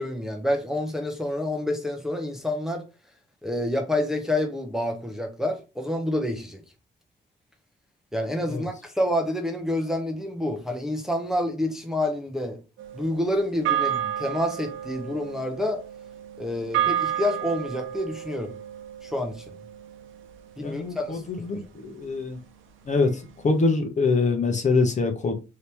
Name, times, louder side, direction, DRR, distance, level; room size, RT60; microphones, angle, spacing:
voice 1, 0.0-2.9 3.4-6.6 8.1-12.6 12.9-15.8 16.4-18.5 19.0-19.4 20.6-21.7, left 1 dB, ahead, 0.7 m, -28 dB
sound 1, 12.8-21.3, right 10 dB, 75° right, 0.6 m, -31 dB
voice 2, 20.6-22.4 22.9-23.1 23.4-25.3, left 3 dB, 35° left, 0.8 m, -24 dB
2.9 x 2.8 x 3.4 m
cardioid pair, 90°, 20 cm